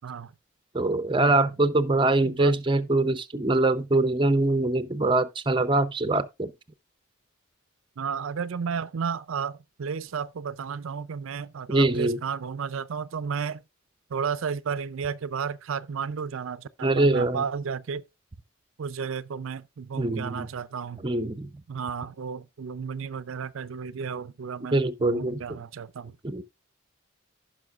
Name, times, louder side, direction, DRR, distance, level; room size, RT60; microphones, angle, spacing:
voice 1, 0.7-6.5 11.7-12.2 16.8-17.4 20.0-20.5 21.0-21.5 24.7-25.4 26.2-26.4, right 2 dB, 25° right, 0.6 m, -23 dB
voice 2, 2.2-2.5 8.0-13.6 14.1-18.0 18.8-21.0 21.7-26.2, right 6 dB, 75° right, 0.4 m, -33 dB
15.5 x 5.9 x 2.4 m
head